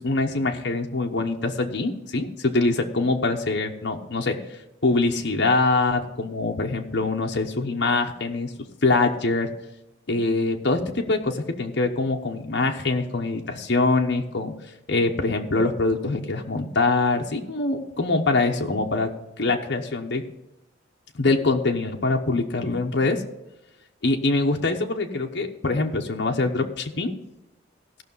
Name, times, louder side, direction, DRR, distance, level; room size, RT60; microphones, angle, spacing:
voice 1, 0.0-4.4 4.8-8.5 8.8-9.5 10.1-14.5 14.9-19.1 19.4-20.2 21.1-23.2 24.0-27.2, left 3 dB, 65° left, 2 dB, 1.0 m, -24 dB
16.0 x 5.9 x 5.5 m, 0.93 s
head